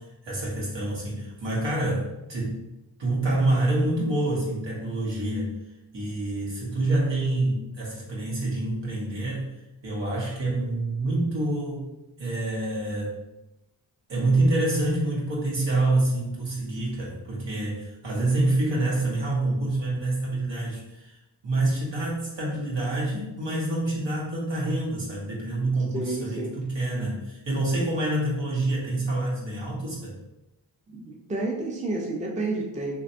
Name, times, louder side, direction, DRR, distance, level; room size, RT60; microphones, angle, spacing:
voice 1, 0.0-2.6 3.0-5.6 5.9-11.8 12.2-13.1 14.1-21.2 21.4-30.1, right 2 dB, 70° right, -5 dB, 1.3 m, -27 dB
voice 2, 25.9-26.5 30.9-33.0, right 2 dB, 15° right, -1 dB, 0.6 m, -30 dB
3.1 x 2.5 x 2.7 m, 0.94 s
cardioid pair, 50°, 45 cm